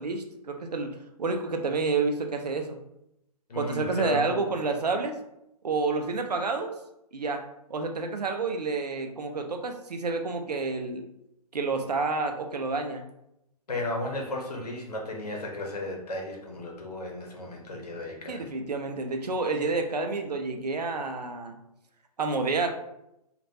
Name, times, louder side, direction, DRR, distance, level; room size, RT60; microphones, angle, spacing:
voice 1, 0.0-2.8 3.5-5.2 5.6-6.8 7.1-7.4 7.7-11.0 11.5-13.1 18.3-21.6 22.2-22.7, right 3 dB, 80° right, 5 dB, 0.5 m, -29 dB
voice 2, 3.5-4.3 13.7-18.5, left 1 dB, 75° left, 0 dB, 0.9 m, -34 dB
3.2 x 2.5 x 2.6 m, 0.82 s
figure-of-eight pair, 120°, 20 cm